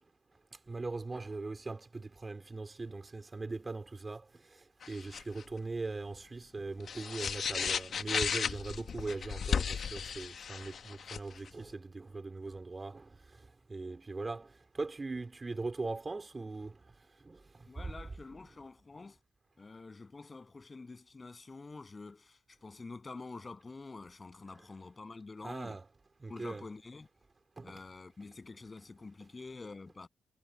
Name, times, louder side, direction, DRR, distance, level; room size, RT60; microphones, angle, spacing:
voice 1, 0.5-16.9 17.2-17.7 25.4-25.8 26.2-26.6 27.6-27.7, right 3 dB, 30° right, 4.1 m, -40 dB
sound 1, 4.8-5.4 6.8-11.5, left 7 dB, 60° left, 1.3 m, -35 dB
voice 2, 17.7-19.2 19.6-25.8 26.3-27.1 27.6-30.1, left 3 dB, 35° left, 7.6 m, -47 dB
supercardioid pair, 50°, 0 cm